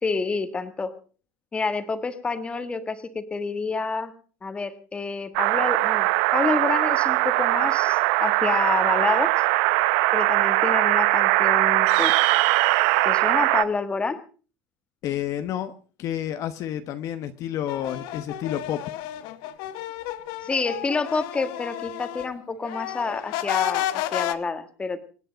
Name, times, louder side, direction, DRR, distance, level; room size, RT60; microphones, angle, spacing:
voice 1, 0.0-0.9 1.5-4.1 4.4-9.3 10.1-12.1 13.0-14.2 20.4-25.0, left 4 dB, 15° left, 11 dB, 1.5 m, -28 dB
sound 1, 5.3-13.6, right 20 dB, 70° right, 0.8 m, -21 dB
voice 2, 15.0-15.7 16.0-18.8, left 11 dB, 40° left, 10 dB, 1.2 m, -30 dB
sound 2, 17.7-22.3 22.6-24.3, left 14 dB, 60° left, 1.2 m, -31 dB
26.0 x 9.9 x 5.2 m, 0.39 s
cardioid pair, 155°, 8 cm